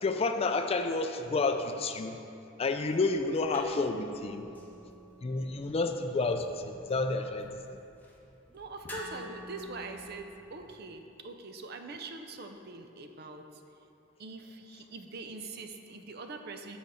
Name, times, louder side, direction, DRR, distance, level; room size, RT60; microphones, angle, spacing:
voice 1, 0.0-2.2 2.6-4.5 5.2-7.5, left 3 dB, 30° left, 6 dB, 0.4 m, -30 dB
sound 1, 2.9-10.8, left 1 dB, 10° left, 0.8 m, -50 dB
voice 2, 8.5-13.6 14.2-16.8, right 3 dB, 55° right, 6 dB, 0.5 m, -43 dB
6.2 x 5.1 x 6.8 m, 2.6 s
head